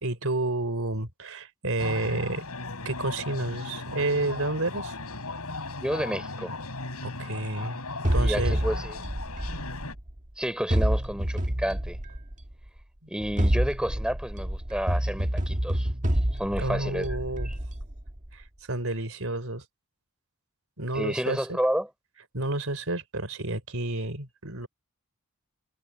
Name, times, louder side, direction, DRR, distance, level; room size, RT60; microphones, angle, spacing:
voice 1, 0.0-2.5 2.8-4.9 7.0-7.8 8.1-8.6 16.6-17.5 18.3-19.6 20.8-21.6 22.3-24.7, right 2 dB, 65° right, 4.2 m, -30 dB
sound 1, 1.8-9.9, left 3 dB, 90° left, 5.5 m, -37 dB
voice 2, 5.8-6.5 8.1-9.0 10.4-12.0 13.1-15.9 16.3-17.1 20.9-21.9, equal, 5° right, 3.8 m, -30 dB
sound 2, 8.0-10.2 10.7-12.5 13.2-18.3, equal, 35° right, 1.6 m, -28 dB
head